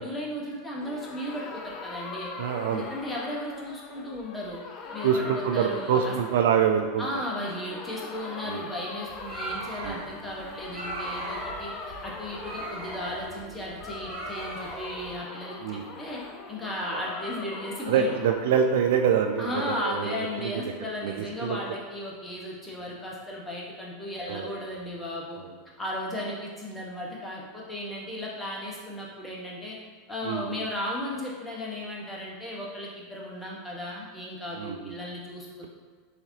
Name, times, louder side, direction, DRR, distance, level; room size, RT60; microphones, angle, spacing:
voice 1, 0.0-2.3 2.7-4.6 4.9-5.3 5.5-6.1 7.0-16.2 16.5-18.1 19.4-25.4 25.8-29.8 30.1-35.7, left 1 dB, 10° left, -4 dB, 1.1 m, -35 dB
sound 1, 0.8-7.0 7.3-19.8, left 3 dB, 35° left, 0.5 m, -41 dB
voice 2, 2.4-2.9 5.0-7.1 8.5-8.7 9.8-10.0 15.6-16.0 17.9-21.6 24.3-24.5 25.4-25.5 30.2-30.6 34.6-35.0, right 7 dB, 60° right, 5 dB, 0.3 m, -26 dB
sound 2, 9.1-15.2, right 2 dB, 40° right, 1.4 m, -39 dB
6.3 x 2.8 x 2.7 m, 1.5 s
figure-of-eight pair, 85°, 0 cm